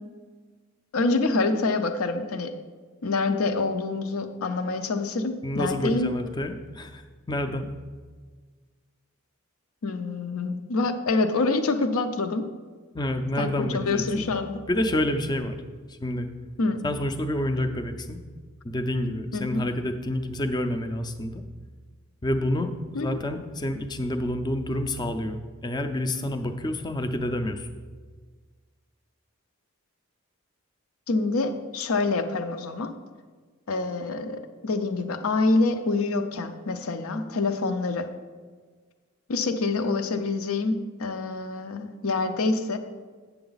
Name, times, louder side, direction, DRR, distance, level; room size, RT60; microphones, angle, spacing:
voice 1, 0.9-2.5 3.0-6.1 9.8-12.5 13.4-14.6 16.6-16.8 19.3-19.6 22.9-23.2 31.1-32.9 33.7-38.1 39.3-42.8, left 3 dB, 75° left, 8 dB, 0.6 m, -26 dB
voice 2, 5.4-7.0 7.3-7.7 12.9-14.3 14.7-15.6 15.9-16.3 16.8-18.2 18.6-21.4 22.2-27.7, left 1 dB, 20° left, 8 dB, 0.4 m, -28 dB
8.6 x 6.9 x 4.0 m, 1.5 s
head